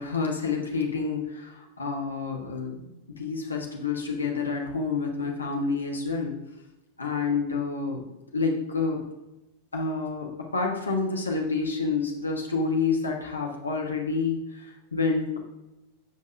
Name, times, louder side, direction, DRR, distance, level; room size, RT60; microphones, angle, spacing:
voice 1, 0.0-6.3 7.0-8.0 8.3-9.0 9.7-15.4, left 4 dB, 75° left, 0 dB, 1.5 m, -28 dB
15.0 x 5.4 x 2.7 m, 0.93 s
figure-of-eight pair, 90°, 0 cm